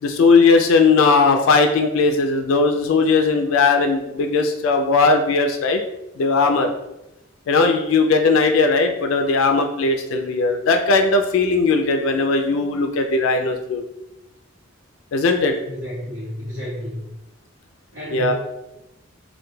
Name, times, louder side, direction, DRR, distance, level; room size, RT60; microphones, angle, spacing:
voice 1, 0.0-5.8 6.2-6.7 7.5-13.8 15.1-15.6 18.1-18.3, left 4 dB, 70° left, 5 dB, 0.3 m, -18 dB
voice 2, 15.6-17.1 17.9-18.3, left 1 dB, 70° right, -10 dB, 1.0 m, -31 dB
2.2 x 2.2 x 3.0 m, 0.90 s
head